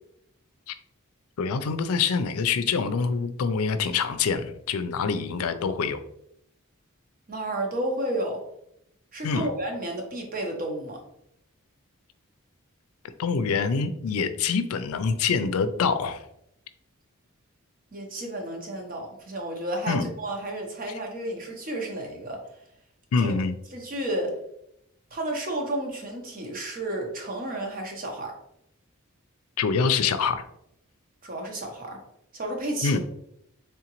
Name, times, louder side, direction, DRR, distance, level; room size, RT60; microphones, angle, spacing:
voice 1, 1.4-6.0 9.2-9.5 13.2-16.2 19.9-20.1 23.1-23.6 29.6-30.4 32.8-33.0, left 5 dB, 90° left, 10 dB, 0.4 m, -25 dB
voice 2, 7.3-8.4 9.1-11.0 17.9-22.4 23.2-23.4 23.7-24.4 25.1-28.4 31.2-32.0 32.3-33.0, right 1 dB, 40° right, 2 dB, 0.8 m, -32 dB
3.7 x 3.5 x 3.0 m, 0.77 s
head